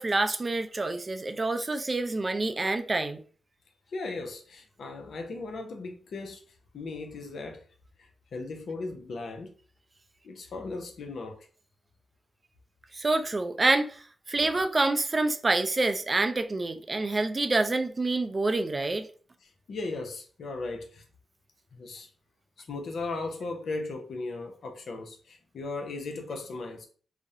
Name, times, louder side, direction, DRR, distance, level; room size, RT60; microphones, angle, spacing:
voice 1, 0.0-3.2 12.9-14.0 14.3-19.1, right 2 dB, 35° right, 0.3 m, -27 dB
voice 2, 3.9-6.4 6.7-7.6 8.0-9.5 10.2-11.5 19.4-21.0 21.8-22.1 22.6-26.9, left 3 dB, 75° left, 0.5 m, -37 dB
2.4 x 2.0 x 2.7 m
cardioid pair, 55°, 0 cm